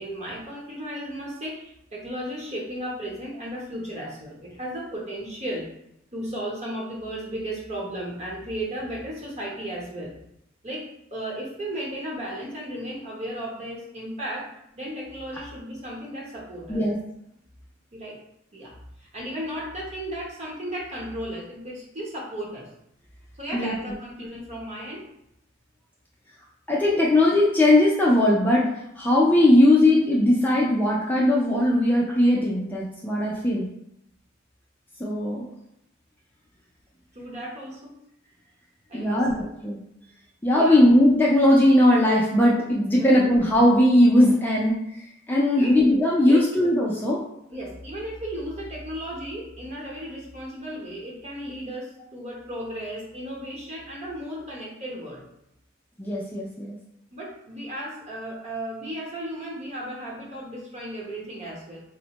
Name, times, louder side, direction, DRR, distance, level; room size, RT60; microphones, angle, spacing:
voice 1, 0.0-5.7 6.1-10.1 10.6-14.5 14.7-16.8 17.9-18.2 18.5-18.7 19.0-22.7 23.4-25.0 37.1-37.9 38.9-39.5 40.5-40.8 43.0-43.3 45.5-45.8 46.3-46.4 47.5-55.2 57.1-61.8, right 1 dB, 35° right, -4 dB, 0.9 m, -35 dB
voice 2, 26.7-28.7 29.0-33.7 35.0-35.5 38.9-39.3 39.6-39.8 40.4-44.8 45.3-47.2 56.0-56.8, left 1 dB, 10° left, -4 dB, 0.4 m, -19 dB
4.1 x 2.1 x 2.9 m, 0.80 s
head